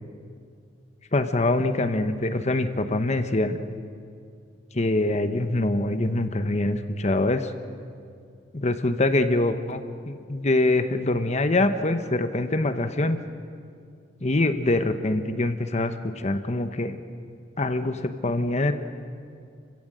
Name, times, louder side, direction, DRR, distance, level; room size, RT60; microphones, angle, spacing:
voice 1, 1.1-3.6 4.7-7.5 8.5-9.8 10.1-13.2 14.2-17.0 17.6-18.7, left 2 dB, 40° left, 9 dB, 1.0 m, -24 dB
29.5 x 16.0 x 7.6 m, 2.3 s
head